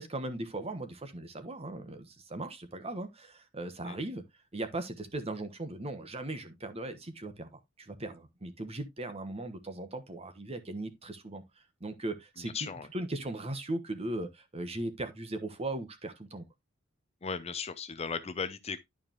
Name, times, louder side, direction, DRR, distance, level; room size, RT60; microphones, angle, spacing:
voice 1, 0.0-4.2 4.5-11.4 11.8-16.5, right 2 dB, 30° right, 1.2 m, -38 dB
voice 2, 12.5-12.9 17.2-18.8, left 5 dB, 30° left, 0.6 m, -36 dB
11.0 x 4.9 x 2.9 m
head